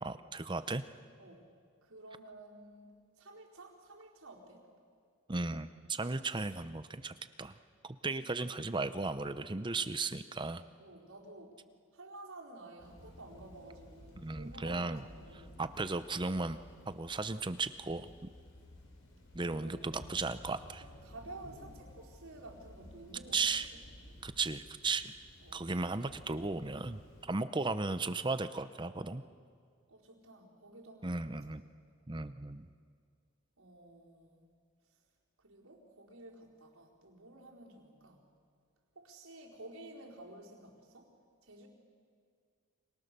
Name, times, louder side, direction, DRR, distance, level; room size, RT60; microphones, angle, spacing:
voice 1, 0.0-0.8 5.3-7.5 7.8-10.6 14.2-15.0 15.6-16.6 16.9-18.3 19.3-20.8 23.3-23.7 24.2-25.1 25.5-29.2 31.0-31.6 32.1-32.7, right 3 dB, 20° right, 12 dB, 0.7 m, -36 dB
voice 2, 1.2-1.5 1.8-4.7 8.1-8.3 10.8-11.6 11.9-15.6 19.6-19.9 20.8-23.8 25.4-25.7 27.5-27.6 29.9-31.2 33.6-34.6 35.4-38.3 38.9-41.1 41.4-41.7, right 2 dB, 75° right, -2 dB, 4.5 m, -52 dB
Thunder / Rain, 12.8-27.2, left 1 dB, 65° left, 4.7 m, -55 dB
29.5 x 25.5 x 6.8 m, 2.1 s
head